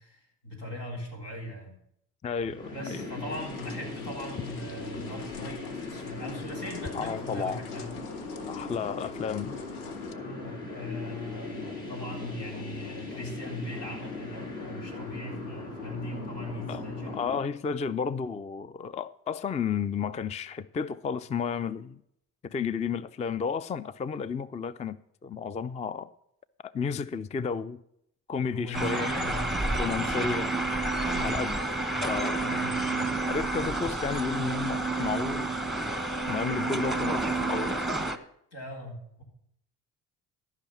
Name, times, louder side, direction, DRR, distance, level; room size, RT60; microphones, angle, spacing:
voice 1, 0.0-1.8 2.7-8.0 10.1-17.2 28.3-30.4 31.0-31.4 32.4-33.1 38.5-39.2, left 1 dB, 70° left, 4.0 m, -40 dB
voice 2, 2.2-3.1 6.9-7.6 8.5-9.6 16.7-22.0 22.4-25.0 25.2-26.1 26.6-27.8 28.3-29.1 29.7-30.5 31.2-31.6 32.0-32.4 33.2-35.5 36.3-37.9, left 6 dB, 15° left, 0.4 m, -32 dB
sound 1, 2.4-17.4, left 3 dB, 55° left, 4.5 m, -39 dB
sound 2, 3.3-10.1, left 7 dB, 90° left, 0.8 m, -49 dB
sound 3, 28.7-38.2, right 2 dB, ahead, 1.0 m, -29 dB
13.5 x 5.8 x 7.2 m
hypercardioid pair, 55°, 44 cm